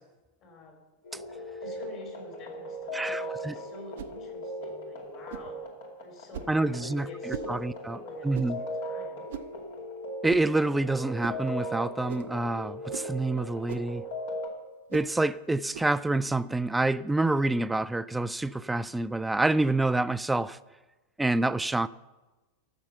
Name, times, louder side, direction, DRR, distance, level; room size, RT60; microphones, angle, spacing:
voice 1, 0.4-0.8 1.6-5.6 6.0-9.3, left 2 dB, 40° left, 4.1 m, -49 dB
sound 1, 1.0-14.5, equal, 55° left, 2.4 m, -38 dB
voice 2, 2.9-3.5 6.5-8.0 8.2-8.6 10.2-14.0 14.9-20.6 21.2-21.9, right 2 dB, 5° right, 0.3 m, -27 dB
sound 2, 3.9-4.2 5.3-5.5 6.3-6.6 7.3-7.5 8.3-8.6 9.3-9.6 10.3-10.5 11.2-11.4 12.1-12.3 12.9-13.1 13.7-13.9 14.9-15.1 15.7-15.9, right 9 dB, 55° right, 0.6 m, -40 dB
13.0 x 7.1 x 6.8 m
figure-of-eight pair, 90°, 0 cm